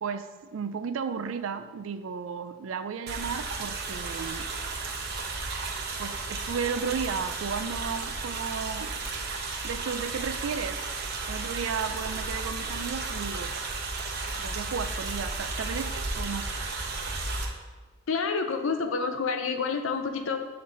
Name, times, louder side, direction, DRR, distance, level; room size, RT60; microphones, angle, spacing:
voice 1, 0.0-4.5 6.0-9.0 9.6-10.8 11.3-13.5 14.4-16.5, right 6 dB, 70° right, 11 dB, 0.4 m, -34 dB
sound 1, 3.1-17.5, right 3 dB, 55° right, 0.9 m, -33 dB
voice 2, 18.1-20.4, left 5 dB, 70° left, 7 dB, 0.6 m, -28 dB
7.8 x 4.0 x 3.8 m, 1.3 s
head